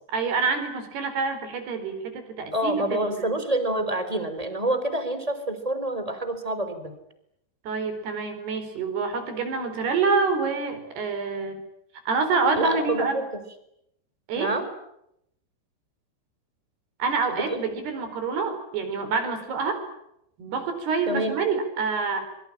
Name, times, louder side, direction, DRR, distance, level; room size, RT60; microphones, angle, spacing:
voice 1, 0.1-3.3 7.6-11.6 12.1-13.2 14.3-14.5 17.0-19.8 20.4-22.2, right 4 dB, 60° right, 8 dB, 6.4 m, -27 dB
voice 2, 2.5-6.9 12.5-13.4 14.3-14.7 17.4-17.6 21.1-21.4, right 1 dB, 10° right, 9 dB, 3.1 m, -27 dB
26.5 x 23.5 x 8.8 m, 0.79 s
omnidirectional pair, 5.2 m